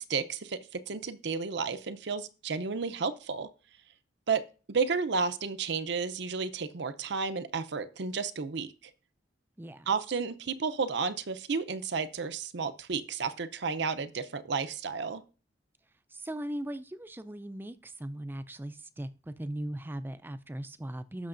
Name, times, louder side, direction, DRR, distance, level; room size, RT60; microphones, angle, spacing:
voice 1, 0.0-3.5 4.3-8.7 9.9-15.2, right 5 dB, 65° right, 0.7 m, -32 dB
voice 2, 9.6-9.9 16.1-21.3, right 1 dB, 10° right, 0.4 m, -39 dB
15.5 x 6.3 x 2.6 m
head